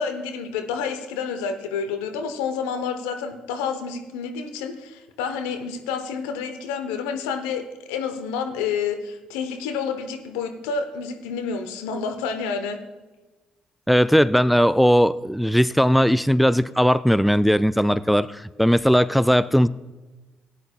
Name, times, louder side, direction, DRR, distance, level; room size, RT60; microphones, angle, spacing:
voice 1, 0.0-7.6 7.9-12.8, left 6 dB, 75° left, 7 dB, 0.9 m, -29 dB
voice 2, 13.9-19.7, equal, ahead, 16 dB, 0.3 m, -18 dB
17.5 x 9.3 x 2.3 m, 1.2 s
hypercardioid pair, 45°, 3 cm